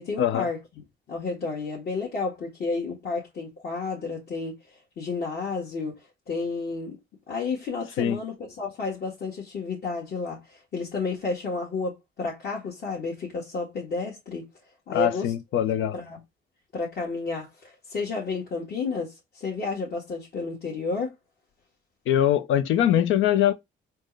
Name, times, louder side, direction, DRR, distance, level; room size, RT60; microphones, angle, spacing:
voice 1, 0.0-7.0 7.3-14.5 14.9-15.3 15.9-16.2 16.7-21.1, left 4 dB, 55° left, 1.7 m, -31 dB
voice 2, 14.9-16.0 22.1-23.5, left 10 dB, 85° left, 0.6 m, -22 dB
4.4 x 2.5 x 3.1 m
cardioid pair, 90°, 20 cm